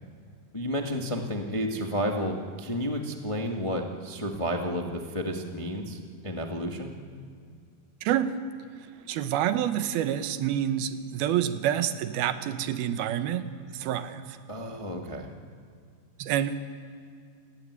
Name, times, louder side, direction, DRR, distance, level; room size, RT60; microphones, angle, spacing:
voice 1, 0.5-6.0 6.2-6.9 14.5-15.3, equal, 25° left, 2 dB, 0.6 m, -31 dB
voice 2, 8.0-8.4 9.1-14.4 16.2-16.5, right 10 dB, 90° right, 10 dB, 3.0 m, -28 dB
29.0 x 16.0 x 9.7 m, 2.2 s
omnidirectional pair, 4.2 m